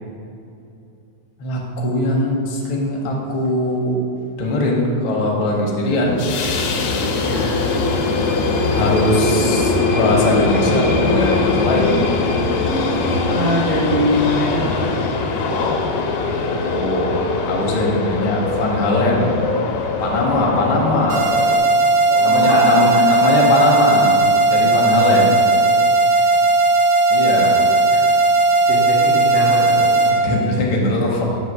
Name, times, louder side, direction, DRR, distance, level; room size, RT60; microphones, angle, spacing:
voice 1, 1.4-4.0 4.4-6.2 8.7-11.9 16.4-19.4 20.0-21.3 22.2-24.2 24.5-25.4 27.1-27.7 30.0-31.4, left 2 dB, 70° left, -2 dB, 1.3 m, -20 dB
sound 1, 6.0-21.6, left 3 dB, 90° left, 2.1 m, -21 dB
voice 2, 7.2-7.6 13.3-15.0 22.1-23.1 24.9-25.3 26.2-26.3 28.6-29.9, equal, 55° right, -9 dB, 0.7 m, -23 dB
sound 2, 21.1-30.1, right 2 dB, 80° right, 1.2 m, -16 dB
8.2 x 2.8 x 5.9 m, 2.8 s
omnidirectional pair, 3.5 m